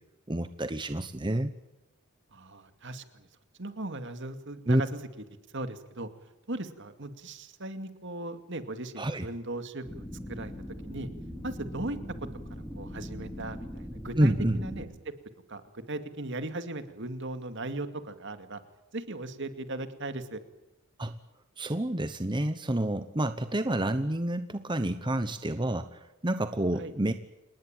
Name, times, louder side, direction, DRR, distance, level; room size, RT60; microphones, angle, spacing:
voice 1, 0.3-1.5 4.7-4.8 9.0-9.3 14.2-14.6 21.0-21.1 21.6-27.1, right 1 dB, 20° right, 10 dB, 1.0 m, -29 dB
voice 2, 2.3-3.3 3.6-5.0 5.5-6.1 6.5-10.5 10.8-11.1 11.4-12.3 12.8-15.1 15.5-18.6 18.9-20.4 26.8-26.9, right 2 dB, 55° right, 9 dB, 2.3 m, -38 dB
sound 1, 9.8-14.9, equal, 5° left, 4.6 m, -40 dB
28.0 x 19.5 x 9.0 m, 0.96 s
head